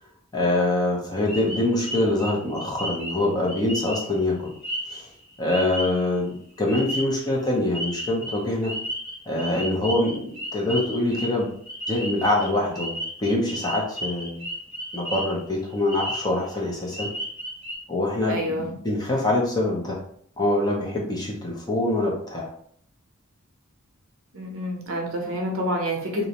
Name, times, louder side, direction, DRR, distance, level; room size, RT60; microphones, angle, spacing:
voice 1, 0.3-4.5 4.9-5.0 5.4-8.7 9.3-11.5 11.9-14.5 14.9-17.1 17.9-20.0 20.4-22.5, left 1 dB, 20° left, -2 dB, 0.5 m, -24 dB
sound 1, 1.3-6.2 6.7-7.5 7.7-15.4 15.7-16.6 16.9-17.8, equal, 75° left, 1.4 m, -34 dB
voice 2, 18.3-18.7 24.3-26.3, equal, 65° right, 1 dB, 0.6 m, -28 dB
2.5 x 2.0 x 2.8 m, 0.62 s
head